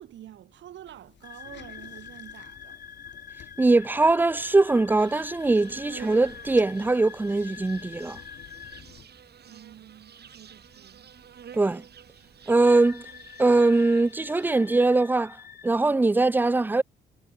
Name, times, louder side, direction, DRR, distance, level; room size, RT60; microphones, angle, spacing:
voice 1, 0.0-2.8 9.4-11.1, right 12 dB, 85° right, 4.2 m, -48 dB
sound 1, 0.9-9.1, left 11 dB, 75° left, 2.4 m, -53 dB
sound 2, 1.2-8.8 12.6-15.7, left 7 dB, 55° left, 2.3 m, -45 dB
voice 2, 3.6-8.2 11.5-11.8 12.5-13.1 13.4-16.8, right 2 dB, 10° right, 0.4 m, -22 dB
Insect, 4.9-14.8, right 8 dB, 60° right, 4.4 m, -49 dB
cardioid pair, 90°, 19 cm